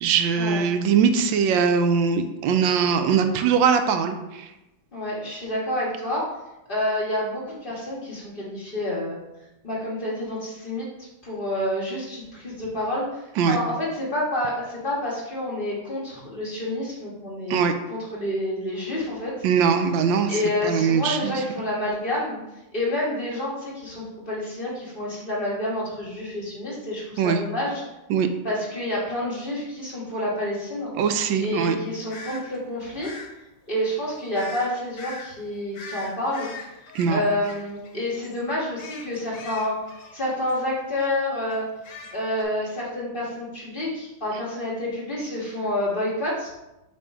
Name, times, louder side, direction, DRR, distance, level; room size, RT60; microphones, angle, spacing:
voice 1, 0.0-4.5 13.4-13.6 17.5-17.7 19.4-20.3 20.6-21.4 27.2-27.4 28.1-28.3 31.0-31.8 36.9-37.2, right 6 dB, 85° right, 7 dB, 1.3 m, -21 dB
voice 2, 4.9-6.3 6.7-9.2 9.6-10.9 11.2-13.2 13.5-19.4 20.3-22.4 22.7-27.8 28.4-31.0 31.4-33.1 33.7-36.5 37.1-39.8 40.1-41.7 42.1-46.5, left 1 dB, 30° left, -6 dB, 1.7 m, -28 dB
sound 1, 32.1-32.4 33.0-33.3 34.3-34.7 35.0-35.3 35.7-38.0 38.2-38.4 38.8-40.6 41.0-41.1 41.5-42.4, left 3 dB, 75° left, 1.5 m, -40 dB
6.9 x 3.0 x 4.8 m, 0.97 s
omnidirectional pair, 2.0 m